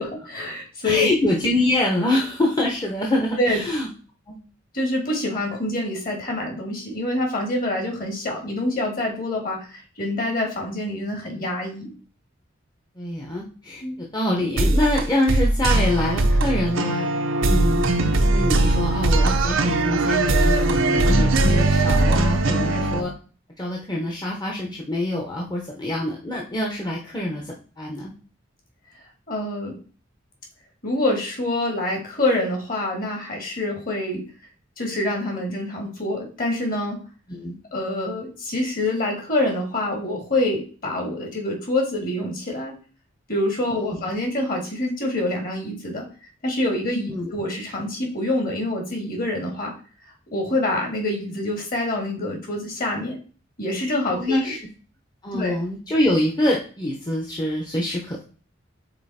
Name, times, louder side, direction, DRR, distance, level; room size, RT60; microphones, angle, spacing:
voice 1, 0.0-1.1 3.4-3.6 4.7-11.9 13.8-14.0 29.3-29.8 30.8-34.2 34.8-37.0 37.7-42.7 43.3-46.1 46.4-49.7 50.3-53.2 53.6-54.5 55.3-55.6, left 1 dB, 45° left, 1 dB, 2.1 m, -26 dB
voice 2, 0.8-3.9 4.3-4.4 13.0-17.1 17.4-23.1 23.6-28.1 37.3-37.5 43.7-44.0 47.1-47.3 54.1-54.6 55.2-58.2, left 1 dB, 20° left, -1 dB, 0.8 m, -25 dB
sound 1, 14.6-23.0, right 2 dB, 85° right, 0.7 m, -20 dB
5.5 x 4.1 x 4.2 m, 0.38 s
head